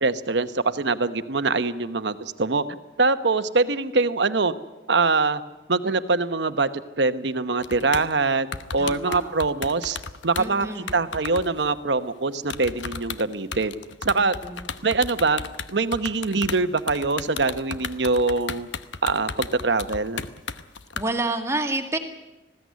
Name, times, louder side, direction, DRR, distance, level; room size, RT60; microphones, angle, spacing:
voice 1, 0.0-2.6 3.0-4.5 4.9-5.4 5.7-6.7 7.0-8.5 8.7-10.0 10.2-13.7 14.0-14.3 14.8-15.4 15.7-18.7 19.0-20.2, right 3 dB, 70° right, 11 dB, 1.0 m, -23 dB
sound 1, 7.6-8.1 8.5-11.8 12.4-21.0, left 5 dB, 85° left, 1.0 m, -34 dB
voice 2, 8.8-9.3 10.4-11.0 14.1-14.7 21.0-22.0, right 2 dB, 15° right, 5 dB, 2.0 m, -29 dB
20.5 x 16.0 x 9.5 m, 1.0 s
head